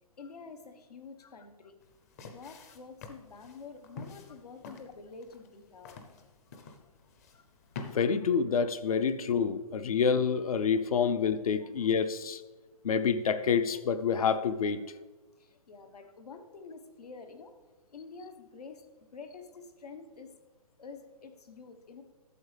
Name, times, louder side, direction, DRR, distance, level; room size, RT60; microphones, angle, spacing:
voice 1, 0.2-1.8 2.2-6.0 15.4-17.6 17.9-18.8 19.1-20.3 20.8-22.0, left 4 dB, 85° left, 7 dB, 1.3 m, -48 dB
sound 1, 1.8-8.0, left 4 dB, 25° left, 0.6 m, -48 dB
voice 2, 7.9-12.4 12.8-14.8, left 6 dB, 65° left, 12 dB, 0.7 m, -27 dB
12.5 x 7.3 x 3.4 m, 1.2 s
hypercardioid pair, 165°, 20 cm